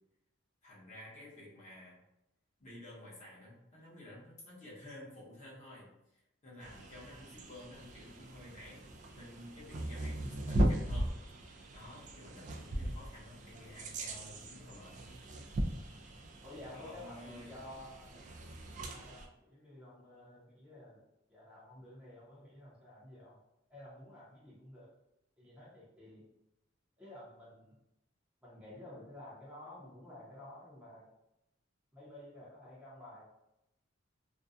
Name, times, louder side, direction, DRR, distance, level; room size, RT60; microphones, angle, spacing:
voice 1, 0.6-2.0 2.6-8.8 9.1-11.2 11.7-15.3 16.7-17.5, left 1 dB, 35° left, -6 dB, 0.9 m, -52 dB
sound 1, 6.6-19.3, right 1 dB, 40° right, 0.3 m, -38 dB
voice 2, 16.4-18.1 18.6-21.0 21.3-23.4 23.7-24.9 25.4-26.2 27.0-27.7 28.4-31.1 31.9-33.3, left 1 dB, 5° right, -8 dB, 0.7 m, -52 dB
2.6 x 2.2 x 2.4 m, 0.87 s
head